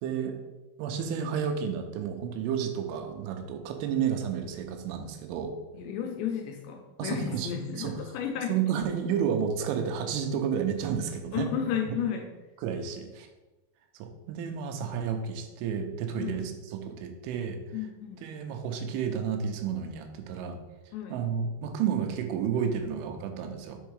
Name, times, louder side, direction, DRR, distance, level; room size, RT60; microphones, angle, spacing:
voice 1, 0.0-0.4 0.8-5.5 7.0-7.5 7.8-7.9 8.4-11.5 12.6-13.3 13.9-17.6 18.2-20.6 21.1-23.8, right 7 dB, 90° right, 5 dB, 3.2 m, -31 dB
voice 2, 5.7-8.5 11.3-12.3 16.2-16.4 17.7-18.3 20.9-21.2, left 8 dB, 85° left, 3 dB, 2.6 m, -33 dB
7.1 x 3.6 x 4.7 m, 1.1 s
omnidirectional pair, 5.4 m